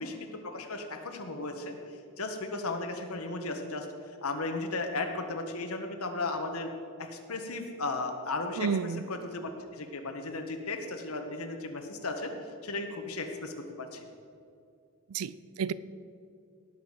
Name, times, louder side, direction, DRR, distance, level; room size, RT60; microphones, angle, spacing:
voice 1, 0.0-3.9 4.2-6.7 7.0-12.3 12.6-14.1, left 3 dB, 75° left, 5 dB, 1.5 m, -35 dB
voice 2, 8.6-9.0 15.1-15.7, right 6 dB, 85° right, 17 dB, 0.5 m, -31 dB
18.0 x 6.2 x 7.6 m, 2.4 s
head